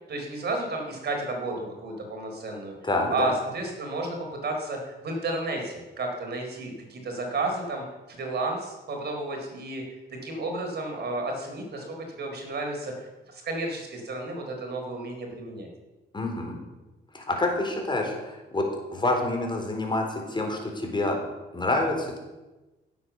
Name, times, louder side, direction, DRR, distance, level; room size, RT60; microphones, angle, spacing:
voice 1, 0.1-2.7 3.1-9.8 10.1-15.7, right 2 dB, 55° right, 2 dB, 4.1 m, -32 dB
voice 2, 2.8-3.3 16.1-16.6 17.1-21.2 21.5-22.2, left 2 dB, 25° left, 2 dB, 4.1 m, -27 dB
16.0 x 8.1 x 7.1 m, 1.1 s
cardioid pair, 90°, 20 cm